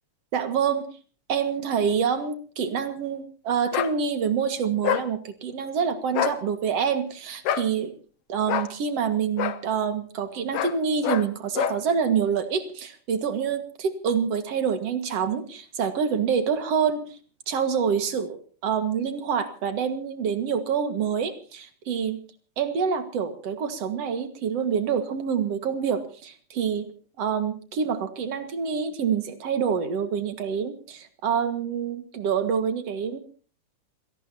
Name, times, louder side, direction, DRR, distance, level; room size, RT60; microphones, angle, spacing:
voice 1, 0.3-0.9 1.3-7.9 8.3-17.2 17.5-22.2 22.6-26.9 27.2-33.2, right 7 dB, 55° right, 9 dB, 2.6 m, -26 dB
sound 1, 3.7-3.9 4.8-5.1 6.1-6.4 7.4-7.7 8.5-8.7 9.4-9.6 10.5-10.8 11.0-11.3 11.5-11.8, left 10 dB, 65° left, 1.7 m, -26 dB
27.5 x 18.0 x 2.8 m, 0.40 s
omnidirectional pair, 3.5 m